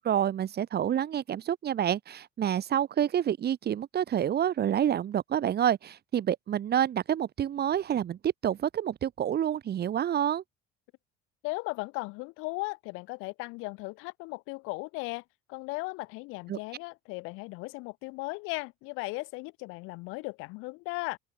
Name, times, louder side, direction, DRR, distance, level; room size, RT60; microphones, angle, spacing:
voice 1, 0.0-10.4 16.5-16.6, right 10 dB, 50° right, 2.3 m, -28 dB
voice 2, 11.4-15.2 15.5-21.2, left 26 dB, 80° left, 7.7 m, -37 dB
open air
supercardioid pair, 75°, 21 cm